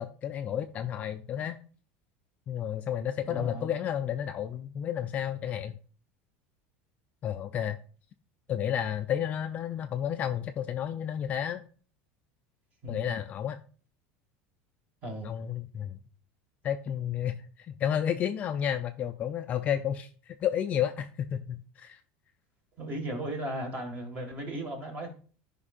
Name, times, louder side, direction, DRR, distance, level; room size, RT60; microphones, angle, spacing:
voice 1, 0.0-1.6 2.5-5.8 7.2-7.8 8.5-11.6 12.9-13.6 15.2-16.0 16.6-22.0, left 9 dB, 25° left, 0.4 m, -31 dB
voice 2, 3.2-3.7 12.8-13.0 15.0-15.3 22.8-25.1, right 1 dB, 25° right, 1.8 m, -36 dB
13.5 x 5.3 x 2.5 m
cardioid pair, 170°, 6 cm